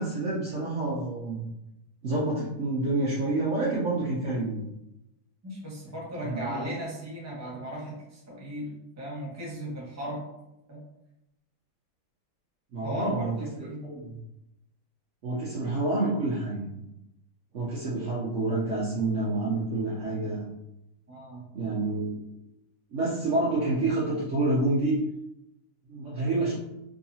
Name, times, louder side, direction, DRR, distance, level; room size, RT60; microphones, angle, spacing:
voice 1, 0.0-1.5 2.0-4.6 6.2-6.7 12.7-14.2 15.2-16.8 17.5-20.5 21.5-22.2 22.9-25.0 25.9-26.6, right 2 dB, 85° right, -7 dB, 0.6 m, -28 dB
voice 2, 5.4-10.2 10.7-10.8 12.8-13.9 21.1-21.4, equal, 15° right, -5 dB, 0.7 m, -37 dB
3.7 x 2.8 x 2.7 m, 0.87 s
omnidirectional pair, 2.3 m